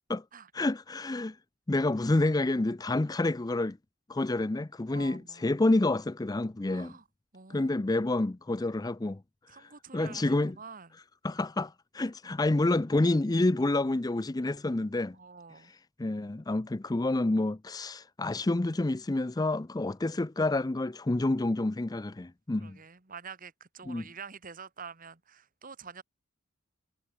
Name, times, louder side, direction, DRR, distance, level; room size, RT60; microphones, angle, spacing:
voice 1, 0.5-1.4 1.7-3.8 4.1-6.9 7.5-9.2 9.5-10.6 11.2-15.2 16.0-22.8 23.9-24.0, left 2 dB, 20° left, 0.4 m, -28 dB
voice 2, 4.9-5.6 6.7-7.0 7.3-7.9 9.5-10.9 15.1-15.7 22.6-26.0, right 5 dB, 40° right, 1.6 m, -47 dB
head